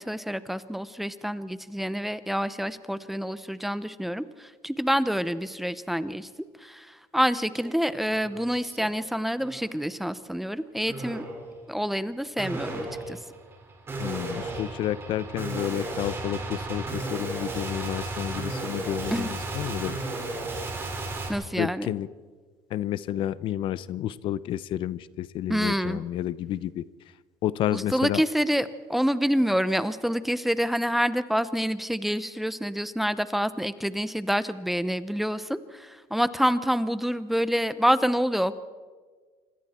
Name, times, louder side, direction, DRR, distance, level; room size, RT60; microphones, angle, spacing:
voice 1, 0.0-6.3 6.6-11.3 11.7-13.2 19.1-19.3 21.3-21.9 25.5-26.0 27.7-38.6, equal, ahead, 13 dB, 0.8 m, -27 dB
sound 1, 7.5-7.7 8.1-8.9 9.4-9.8 10.9-11.5 12.4-21.3, right 2 dB, 25° right, 4.7 m, -34 dB
voice 2, 14.0-20.0 21.6-22.1 22.7-26.8 27.4-28.2, left 12 dB, 55° left, 17 dB, 0.7 m, -30 dB
26.0 x 26.0 x 4.4 m, 1.5 s
cardioid pair, 135°, 10 cm